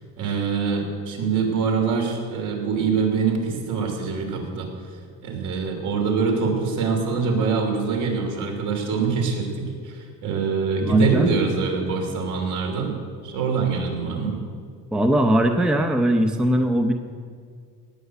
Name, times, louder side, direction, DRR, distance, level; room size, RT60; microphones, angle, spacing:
voice 1, 0.2-4.7 5.2-12.9 13.2-14.4, right 5 dB, 65° right, 2 dB, 3.3 m, -24 dB
voice 2, 10.8-11.3 14.9-16.9, equal, ahead, 5 dB, 0.6 m, -20 dB
18.0 x 6.4 x 8.3 m, 2.1 s
cardioid pair, 150°, 32 cm